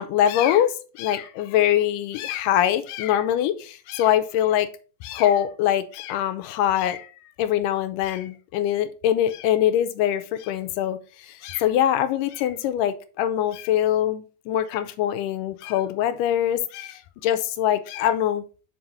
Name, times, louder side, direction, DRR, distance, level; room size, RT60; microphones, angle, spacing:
voice 1, 0.0-4.7 5.0-7.1 7.4-11.0 11.3-18.4, left 11 dB, 90° left, 2.2 m, -23 dB
5.9 x 5.5 x 3.9 m
omnidirectional pair, 3.7 m